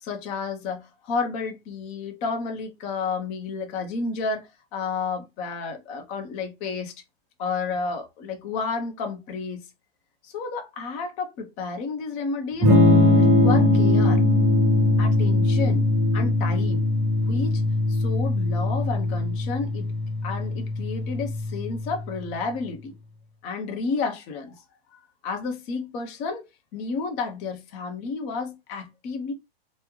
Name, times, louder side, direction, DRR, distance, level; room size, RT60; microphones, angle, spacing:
voice 1, 0.0-6.9 7.4-9.7 10.2-12.7 13.2-14.2 15.0-15.8 16.1-16.8 17.3-17.6 17.9-19.9 20.2-23.0 23.4-24.6 24.9-29.3, left 4 dB, 25° left, 0.7 m, -31 dB
Electric guitar / Strum, 12.6-22.4, left 2 dB, 25° right, 1.6 m, -21 dB
3.6 x 2.1 x 3.0 m
hypercardioid pair, 160°, 31 cm